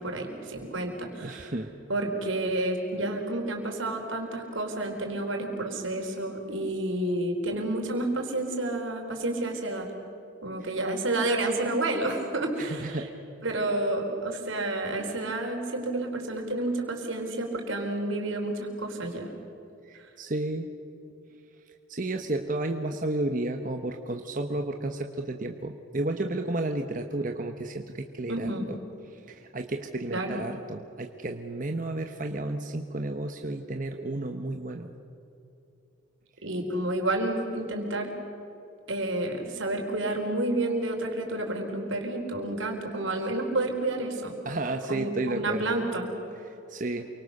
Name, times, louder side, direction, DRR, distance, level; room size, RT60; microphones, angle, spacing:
voice 1, 0.0-1.5 1.9-9.9 10.4-13.0 13.4-19.3 28.3-28.7 30.1-30.4 36.4-38.1 38.9-44.4 44.9-46.1, right 2 dB, 80° right, 2 dB, 4.5 m, -30 dB
voice 2, 1.2-1.7 10.6-10.7 12.6-13.1 19.8-20.7 21.9-28.8 29.1-34.9 44.4-45.8 46.4-47.1, right 2 dB, 40° right, 5 dB, 1.1 m, -32 dB
28.5 x 24.5 x 6.7 m, 2.9 s
head